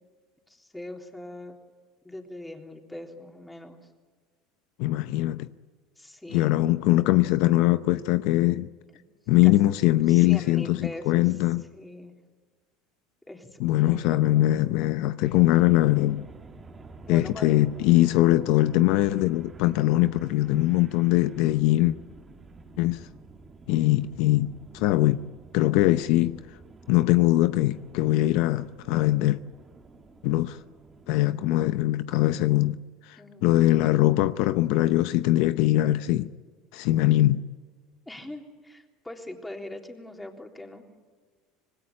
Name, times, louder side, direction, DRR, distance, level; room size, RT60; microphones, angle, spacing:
voice 1, 0.5-1.6 2.0-3.8 6.0-6.5 9.4-9.5 10.1-11.4 11.7-12.1 13.2-14.2 17.0-17.6 33.2-33.5 38.1-40.8, left 1 dB, 5° left, 3.6 m, -41 dB
voice 2, 4.8-5.5 6.3-8.7 9.3-11.6 13.6-16.2 17.1-22.0 22.8-23.0 23.7-25.2 25.5-26.4 26.9-29.4 30.2-30.6 31.1-32.8 33.1-36.3 36.7-37.4, left 16 dB, 70° left, 0.7 m, -22 dB
sound 1, 15.2-31.3, right 3 dB, 20° right, 2.5 m, -49 dB
26.5 x 20.0 x 8.8 m
supercardioid pair, 115°, 0 cm